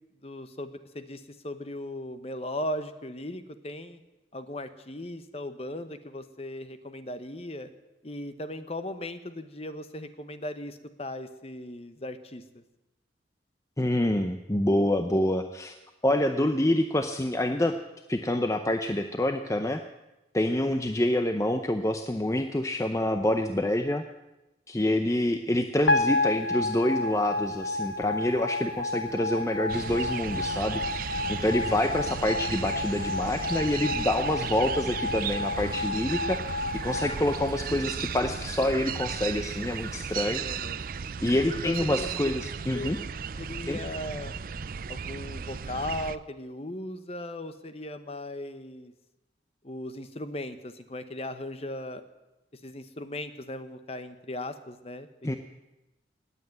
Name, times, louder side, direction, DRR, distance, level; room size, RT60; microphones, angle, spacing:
voice 1, 0.2-4.0 4.3-7.7 8.0-12.6 40.4-40.8 41.6-42.3 42.7-43.1 43.4-44.3 44.9-48.9 49.6-52.0 52.6-55.1, left 1 dB, 35° left, 10 dB, 1.0 m, -37 dB
voice 2, 13.8-15.8 16.0-17.7 18.1-19.8 20.3-24.0 24.7-40.4 41.2-43.0 43.7-43.8 55.2-55.4, left 1 dB, 15° left, 7 dB, 0.6 m, -27 dB
sound 1, 25.9-38.2, left 2 dB, 70° left, 1.1 m, -31 dB
sound 2, 29.7-46.2, right 6 dB, 50° right, 0.5 m, -35 dB
19.0 x 8.4 x 9.0 m, 0.99 s
head